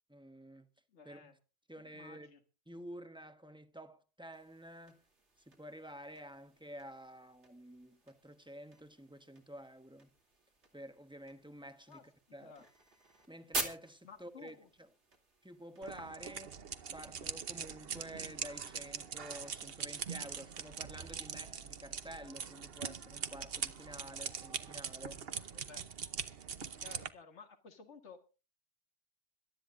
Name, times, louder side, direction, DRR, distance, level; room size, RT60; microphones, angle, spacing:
voice 1, 0.1-0.7 1.0-1.3 1.7-2.3 2.7-5.0 5.4-10.1 10.7-12.0 12.3-12.5 13.3-14.9 15.4-16.6 16.9-25.2, equal, 5° right, 1.0 m, -50 dB
voice 2, 0.9-1.3 1.8-2.4 11.9-12.0 12.4-12.7 14.0-14.7 25.5-25.8 26.8-28.2, left 5 dB, 75° left, 2.0 m, -54 dB
sound 1, 4.3-16.1, right 3 dB, 75° right, 2.9 m, -48 dB
sound 2, 15.8-27.1, right 7 dB, 60° right, 1.1 m, -42 dB
26.0 x 12.5 x 2.6 m
omnidirectional pair, 1.2 m